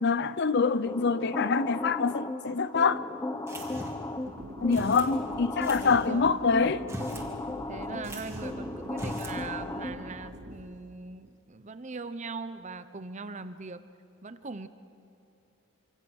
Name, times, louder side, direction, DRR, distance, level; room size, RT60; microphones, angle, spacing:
voice 1, 0.0-3.0 4.6-6.8, left 5 dB, 50° left, 0.6 m, -25 dB
sound 1, 0.9-10.3, left 2 dB, 15° left, 0.8 m, -36 dB
sound 2, 3.5-4.1 4.7-5.1 5.6-6.1 6.8-7.3 7.6-7.7 8.0-8.6 8.9-9.4, right 1 dB, 10° right, 2.5 m, -40 dB
sound 3, 4.2-10.6, equal, 60° right, 2.6 m, -44 dB
voice 2, 5.8-6.3 6.6-6.7 7.7-13.8 14.2-14.7, right 3 dB, 35° right, 0.8 m, -40 dB
26.5 x 25.5 x 6.3 m
head